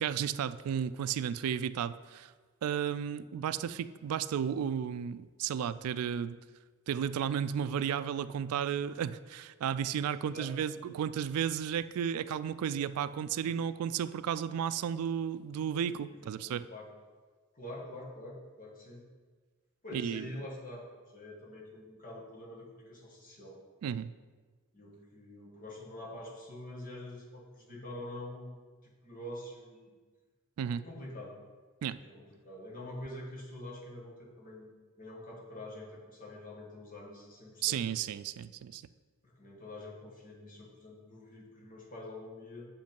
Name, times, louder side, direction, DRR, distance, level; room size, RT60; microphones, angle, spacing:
voice 1, 0.0-2.3 2.6-6.4 6.9-16.6 19.9-20.3 23.8-24.1 30.6-30.8 31.8-32.0 37.6-38.8, right 8 dB, 85° right, 15 dB, 0.3 m, -33 dB
voice 2, 16.2-16.9 17.5-19.0 19.8-23.6 24.7-30.0 30.8-31.3 32.0-34.7 35.0-37.9 39.2-42.7, left 1 dB, 40° left, -3 dB, 1.6 m, -46 dB
7.2 x 5.2 x 5.3 m, 1.4 s
head